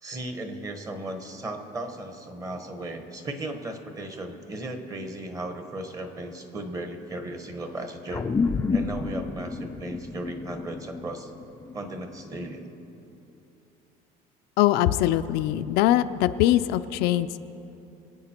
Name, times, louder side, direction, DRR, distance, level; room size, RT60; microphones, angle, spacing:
voice 1, 0.0-8.3 8.7-11.3 11.7-12.7, right 1 dB, 20° right, 6 dB, 1.2 m, -36 dB
sound 1, 8.1-12.9, left 4 dB, 15° left, 0.5 m, -30 dB
voice 2, 14.6-17.4, left 13 dB, 70° left, 10 dB, 0.5 m, -22 dB
24.0 x 8.6 x 4.4 m, 2.9 s
cardioid pair, 155°, 17 cm